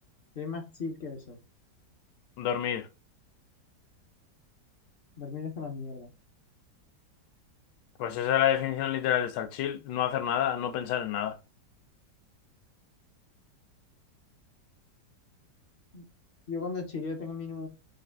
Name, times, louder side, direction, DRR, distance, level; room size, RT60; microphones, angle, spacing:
voice 1, 0.4-1.4 5.2-6.1 15.9-16.0 16.5-17.7, left 4 dB, 60° left, 0.6 m, -36 dB
voice 2, 2.4-2.9 8.0-11.4, left 10 dB, 80° left, 1.3 m, -28 dB
5.1 x 2.5 x 3.4 m
omnidirectional pair, 1.9 m